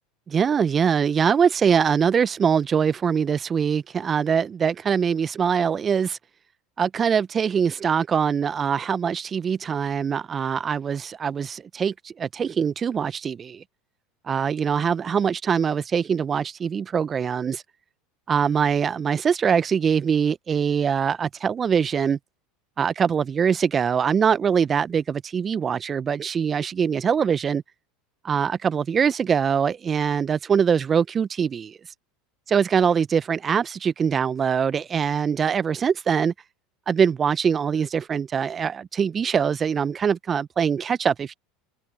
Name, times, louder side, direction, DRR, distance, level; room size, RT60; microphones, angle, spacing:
voice 1, 0.3-6.2 6.8-13.6 14.3-17.6 18.3-22.2 22.8-27.6 28.2-31.8 32.5-36.3 36.9-41.3, right 7 dB, 30° right, 1.1 m, -23 dB
hypercardioid pair, 80°, 0 cm